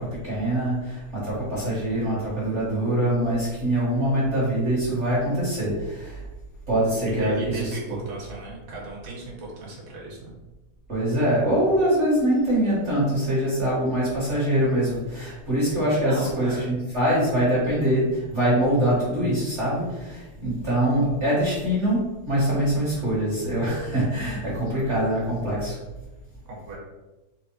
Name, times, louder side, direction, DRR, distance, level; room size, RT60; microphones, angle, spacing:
voice 1, 0.0-6.2 6.7-8.0 10.9-26.1, right 1 dB, 40° right, -9 dB, 1.0 m, -24 dB
voice 2, 7.2-10.3 16.1-16.8 26.5-26.8, right 2 dB, 65° right, -3 dB, 2.2 m, -36 dB
4.9 x 2.1 x 4.4 m, 1.1 s
omnidirectional pair, 3.5 m